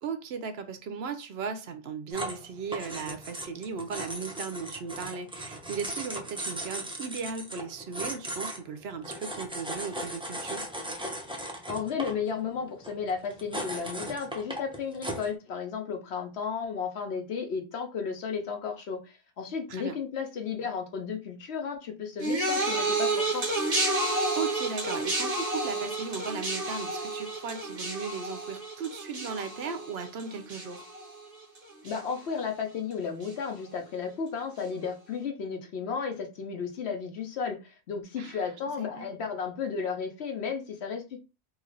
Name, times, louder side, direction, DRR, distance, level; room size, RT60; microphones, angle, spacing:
voice 1, 0.0-10.6 19.7-20.0 24.4-30.9 38.2-38.4 38.8-39.1, right 5 dB, 65° right, 0.8 m, -37 dB
sound 1, 2.1-15.3, right 1 dB, 5° right, 0.5 m, -38 dB
voice 2, 11.7-23.5 31.8-41.2, left 6 dB, 70° left, 1.0 m, -34 dB
sound 2, 22.2-31.6 31.8-32.4 33.2-33.3, right 2 dB, 35° right, 0.9 m, -31 dB
3.1 x 2.4 x 3.9 m
omnidirectional pair, 1.2 m